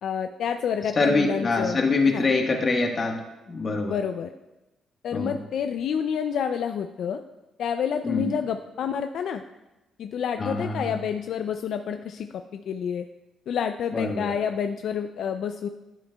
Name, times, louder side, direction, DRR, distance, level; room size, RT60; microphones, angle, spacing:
voice 1, 0.0-1.8 2.1-2.3 3.9-4.3 5.0-7.2 7.6-9.4 10.0-13.1 13.5-15.7, left 7 dB, 70° left, 7 dB, 0.3 m, -28 dB
voice 2, 1.0-3.2 3.5-4.0 5.1-5.4 8.0-8.3 10.4-11.0 13.9-14.3, left 3 dB, 40° left, 2 dB, 1.3 m, -24 dB
11.5 x 7.8 x 2.3 m, 1.0 s
cardioid pair, 90°, 0 cm